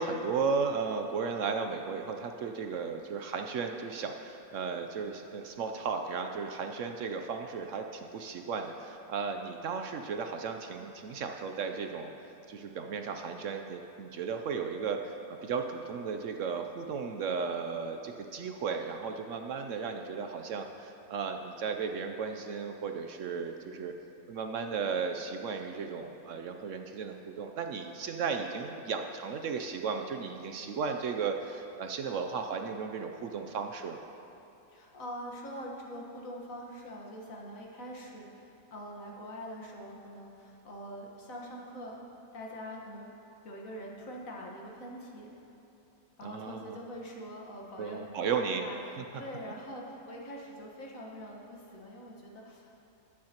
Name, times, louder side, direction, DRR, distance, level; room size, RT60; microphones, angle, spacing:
voice 1, 0.0-12.1 12.5-23.9 24.3-34.0 46.2-46.8 47.8-48.7 49.0-49.2, right 5 dB, 65° right, 5 dB, 0.8 m, -35 dB
voice 2, 34.7-42.0 42.3-43.1 43.4-45.3 46.2-48.8 49.2-52.8, equal, 65° left, -2 dB, 1.8 m, -44 dB
19.5 x 8.6 x 2.9 m, 2.8 s
omnidirectional pair, 1.6 m